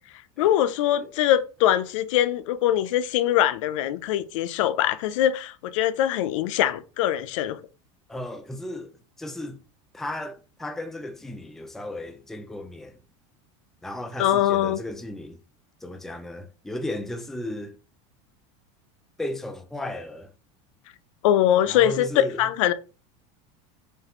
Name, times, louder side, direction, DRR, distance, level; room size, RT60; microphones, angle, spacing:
voice 1, 0.4-7.6 14.2-14.8 21.2-22.1 22.4-22.7, left 11 dB, 85° left, 0.4 m, -22 dB
voice 2, 8.1-9.6 9.9-13.0 13.8-15.4 15.8-17.8 19.2-20.3 21.7-22.4, left 1 dB, ahead, 0.3 m, -35 dB
5.3 x 2.4 x 2.9 m
supercardioid pair, 155°, 16 cm